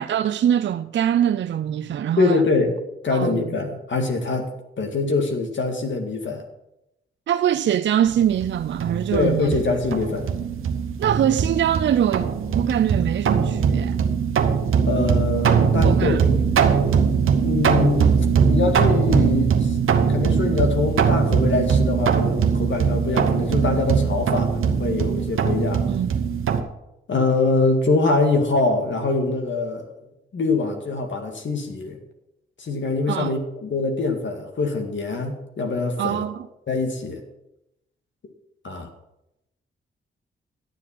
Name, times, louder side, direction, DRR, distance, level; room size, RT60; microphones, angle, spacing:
voice 1, 0.0-2.4 3.1-3.4 7.3-9.6 11.0-14.0 15.8-16.2 25.9-26.1 33.1-33.3 36.0-36.5, right 10 dB, 60° right, 0.4 m, -23 dB
voice 2, 2.2-2.8 3.0-4.5 4.8-6.4 9.1-10.3 14.9-16.4 17.4-18.2 18.4-19.8 20.1-25.9 27.1-29.9 30.3-32.0 32.6-36.2 36.7-37.2 38.6-38.9, left 3 dB, 65° left, 2.0 m, -24 dB
sound 1, 8.1-26.6, right 6 dB, 75° right, 1.0 m, -21 dB
11.5 x 7.4 x 5.9 m
cardioid pair, 55°, 21 cm